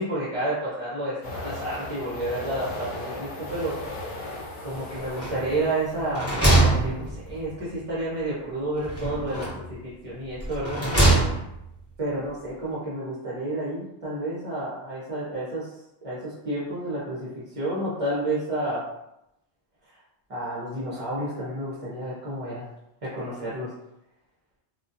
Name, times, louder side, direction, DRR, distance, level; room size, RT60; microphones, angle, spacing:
voice 1, 0.0-3.8 4.6-6.3 6.6-10.8 12.0-15.7 16.0-17.3 17.6-18.8 20.3-22.6 23.0-23.7, right 1 dB, 40° right, -8 dB, 0.6 m, -30 dB
sound 1, 1.2-7.0, left 2 dB, 60° left, 0.6 m, -37 dB
sound 2, 5.2-5.7 6.0-7.6 8.8-9.7 10.4-11.7, right 2 dB, 15° left, 0.6 m, -23 dB
2.3 x 2.1 x 2.6 m, 0.84 s
omnidirectional pair, 1.2 m